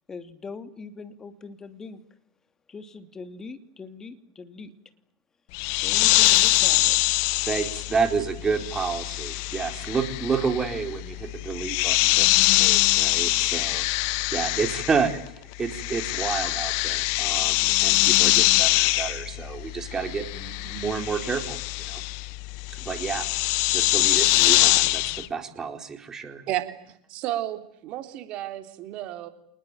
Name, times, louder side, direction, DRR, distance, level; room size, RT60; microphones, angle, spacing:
voice 1, 0.1-2.0 2.7-4.7 5.8-7.0, left 4 dB, 20° left, 10 dB, 2.8 m, -41 dB
sound 1, 5.5-15.3 15.5-25.3, left 22 dB, 60° left, 1.0 m, -23 dB
voice 2, 7.5-13.9 14.3-15.1 15.6-22.0 22.7-23.3 23.7-26.4, right 5 dB, 20° right, 7 dB, 4.1 m, -30 dB
voice 3, 26.5-29.3, right 14 dB, 50° right, 8 dB, 3.5 m, -32 dB
28.0 x 20.0 x 9.2 m, 0.70 s
hypercardioid pair, 95°, 2 cm